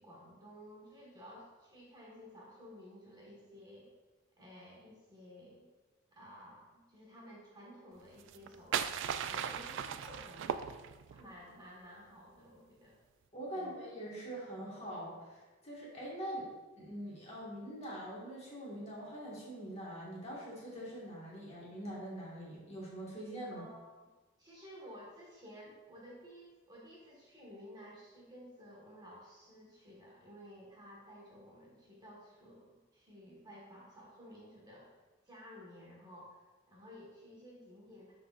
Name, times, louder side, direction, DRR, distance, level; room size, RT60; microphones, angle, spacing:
voice 1, 0.0-3.9 4.4-5.7 6.1-8.9 9.2-10.7 11.1-13.0 13.5-13.7 23.5-24.1 24.4-34.9 35.2-38.1, equal, 20° right, -4 dB, 1.5 m, -54 dB
sound 1, 8.2-11.2, right 8 dB, 60° right, 0.3 m, -37 dB
voice 2, 13.3-16.5 16.8-23.6, equal, 30° left, -5 dB, 1.7 m, -43 dB
10.5 x 3.9 x 2.5 m, 1.2 s
head